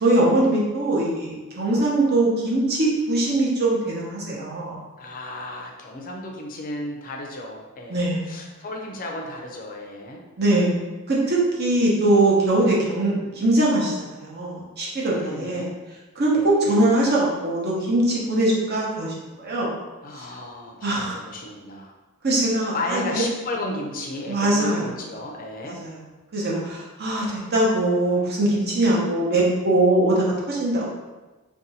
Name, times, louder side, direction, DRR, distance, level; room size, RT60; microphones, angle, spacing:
voice 1, 0.0-4.8 7.9-8.3 10.4-10.7 11.1-15.7 16.2-19.7 20.8-21.2 22.2-23.2 24.3-24.9 25.6-26.0 26.3-30.9, right 2 dB, 45° right, -4 dB, 0.7 m, -22 dB
voice 2, 5.0-10.2 15.1-15.7 16.4-16.8 20.0-21.9 22.7-25.8, left 2 dB, 40° left, 1 dB, 0.5 m, -34 dB
2.6 x 2.3 x 4.0 m, 1.2 s
head